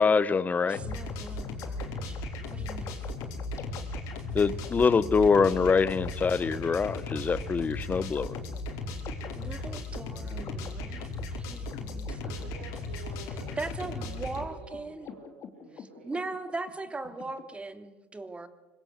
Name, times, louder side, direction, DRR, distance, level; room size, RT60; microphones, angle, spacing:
voice 1, 0.0-0.8 4.3-8.3, left 5 dB, 25° left, 17 dB, 1.1 m, -24 dB
voice 2, 0.6-2.2 2.5-3.0 9.3-12.3 13.6-15.1 15.8-18.5, right 3 dB, 20° right, 8 dB, 3.0 m, -39 dB
sound 1, 0.7-14.4, left 2 dB, 65° left, 5.2 m, -36 dB
sound 2, 0.7-17.4, left 7 dB, 50° left, 3.0 m, -48 dB
voice 3, 12.3-16.1, right 2 dB, 85° right, 1 dB, 4.8 m, -49 dB
25.0 x 22.0 x 8.1 m, 1.0 s
hypercardioid pair, 70°, 6 cm